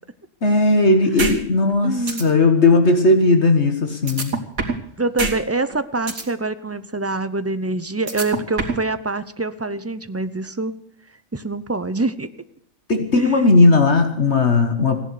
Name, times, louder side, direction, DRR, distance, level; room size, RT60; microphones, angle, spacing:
voice 1, 0.4-4.3 12.9-15.0, left 3 dB, 55° left, 6 dB, 1.7 m, -16 dB
sound 1, 1.2-1.3 1.7-1.8 2.1-2.2 4.1-4.8 5.2-5.3 5.7-6.2 8.1-8.8, right 4 dB, 80° right, 3.2 m, -23 dB
voice 2, 1.8-2.3 5.0-10.7 11.3-12.3 13.1-13.5, right 2 dB, 15° right, 12 dB, 0.5 m, -25 dB
17.0 x 11.0 x 6.8 m, 0.69 s
omnidirectional pair, 1.4 m